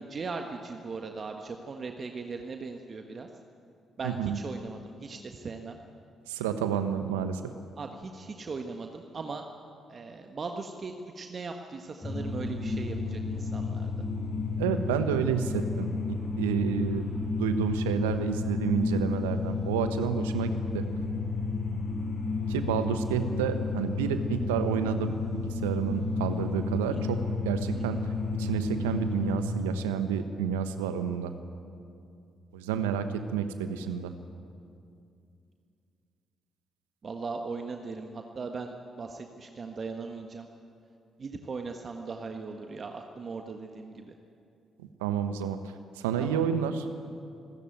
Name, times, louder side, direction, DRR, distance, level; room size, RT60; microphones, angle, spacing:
voice 1, 0.0-3.3 4.0-5.8 7.8-9.4 9.9-13.9 26.9-27.0 27.7-28.0 37.0-40.5 41.2-44.2 46.2-46.4, right 4 dB, 45° right, 4 dB, 1.5 m, -39 dB
voice 2, 4.0-4.4 6.3-7.4 14.6-17.1 17.4-20.8 22.5-27.2 27.4-28.0 28.4-31.3 32.5-34.1 45.0-45.6 46.0-46.8, right 8 dB, 85° right, 9 dB, 1.1 m, -30 dB
sound 1, 12.0-29.4, left 3 dB, 25° left, 6.6 m, -32 dB
26.5 x 13.5 x 9.2 m, 2.5 s
hypercardioid pair, 45°, 0 cm